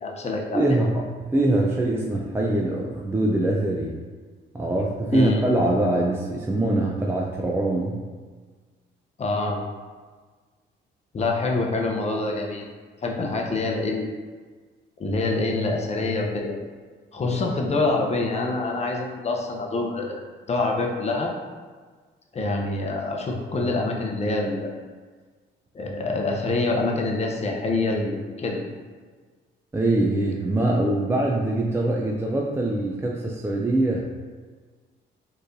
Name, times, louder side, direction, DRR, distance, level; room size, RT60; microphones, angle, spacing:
voice 1, 0.0-0.8 5.1-5.4 9.2-9.6 11.1-12.7 13.0-14.1 15.0-16.6 17.1-20.2 20.5-21.3 22.3-24.7 25.7-28.6, left 2 dB, 35° left, 0 dB, 0.7 m, -26 dB
voice 2, 0.5-1.0 1.3-3.9 4.5-8.0 29.7-34.0, right 1 dB, 10° right, -2 dB, 0.4 m, -23 dB
4.3 x 3.2 x 2.6 m, 1.5 s
cardioid pair, 90°, 20 cm